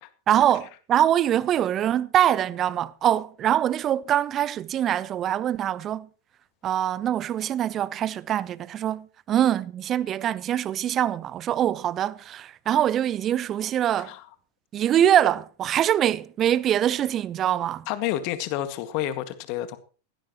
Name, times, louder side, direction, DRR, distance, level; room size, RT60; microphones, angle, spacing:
voice 1, 0.3-6.1 6.6-14.1 14.7-17.9, right 11 dB, 30° right, 0.8 m, -24 dB
voice 2, 17.9-19.8, left 12 dB, 45° left, 1.9 m, -29 dB
16.5 x 16.5 x 3.0 m
figure-of-eight pair, 90°, 0 cm